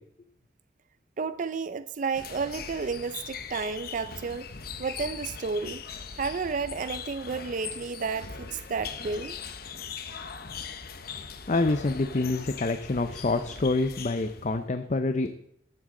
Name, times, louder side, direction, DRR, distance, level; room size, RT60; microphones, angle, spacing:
voice 1, 1.2-4.5 4.8-5.8 6.1-9.4, right 4 dB, 45° right, 13 dB, 0.4 m, -32 dB
sound 1, 2.1-14.6, left 6 dB, 60° left, 1.0 m, -40 dB
voice 2, 11.5-15.3, left 2 dB, 45° left, 9 dB, 0.6 m, -27 dB
14.0 x 12.5 x 3.8 m, 0.73 s
head